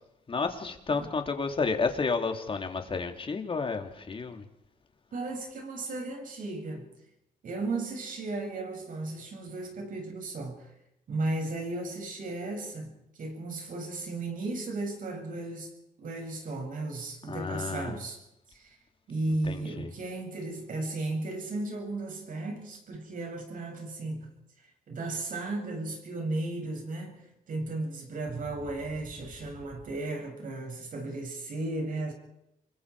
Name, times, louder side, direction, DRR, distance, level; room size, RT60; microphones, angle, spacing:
voice 1, 0.3-4.4 17.3-18.0 19.4-19.9, left 4 dB, 35° left, 3.1 m, -31 dB
voice 2, 5.1-6.9 7.4-10.7 11.1-12.9 13.2-15.7 16.0-18.2 18.5-18.8 19.1-24.3 24.9-32.1, right 2 dB, 60° right, 7.7 m, -35 dB
28.0 x 23.0 x 5.0 m
cardioid pair, 105°, 16 cm